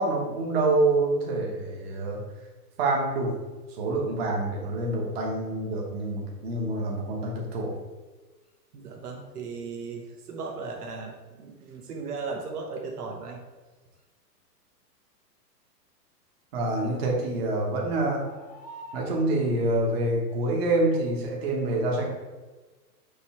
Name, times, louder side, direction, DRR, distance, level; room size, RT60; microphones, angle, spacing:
voice 1, 0.0-2.2 2.8-3.3 3.7-7.8 16.5-18.2 18.9-22.0, right 2 dB, 40° right, -1 dB, 1.2 m, -26 dB
sound 1, 8.4-8.5 11.8-11.9 13.9-14.0 16.6-16.9 18.2-19.3 20.3-20.5 20.9-21.0, equal, 30° left, 0.4 m, -46 dB
voice 2, 8.7-13.4 16.8-17.2, right 4 dB, 65° right, 1 dB, 1.2 m, -37 dB
5.4 x 3.1 x 5.6 m, 1.2 s
hypercardioid pair, 160°, 49 cm